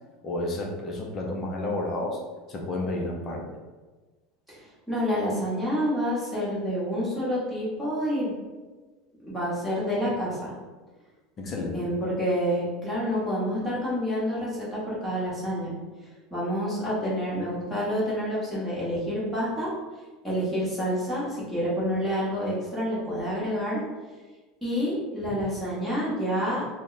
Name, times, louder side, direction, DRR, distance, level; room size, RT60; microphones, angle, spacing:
voice 1, 0.2-2.2 2.5-3.6 11.4-11.9, left 2 dB, 25° left, 0 dB, 0.5 m, -31 dB
voice 2, 4.5-8.3 9.2-10.5 11.7-15.7 16.3-19.7 20.2-23.8 24.6-26.6, equal, ahead, -9 dB, 1.0 m, -28 dB
3.3 x 2.1 x 3.9 m, 1.3 s
supercardioid pair, 175°, 0 cm